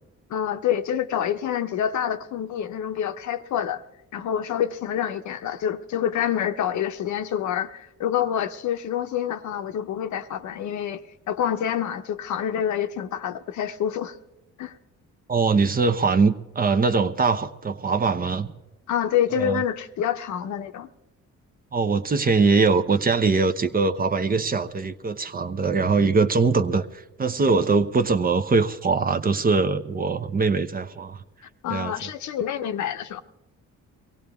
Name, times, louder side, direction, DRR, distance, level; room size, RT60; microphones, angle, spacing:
voice 1, 0.3-3.8 4.1-14.2 14.6-14.7 18.9-20.9 31.6-33.2, left 9 dB, 70° left, 9 dB, 0.8 m, -27 dB
voice 2, 15.3-18.5 19.4-19.6 21.7-31.2 31.7-31.9, right 4 dB, 30° right, 10 dB, 0.8 m, -22 dB
23.0 x 17.0 x 3.5 m, 0.97 s
cardioid pair, 90°, 30 cm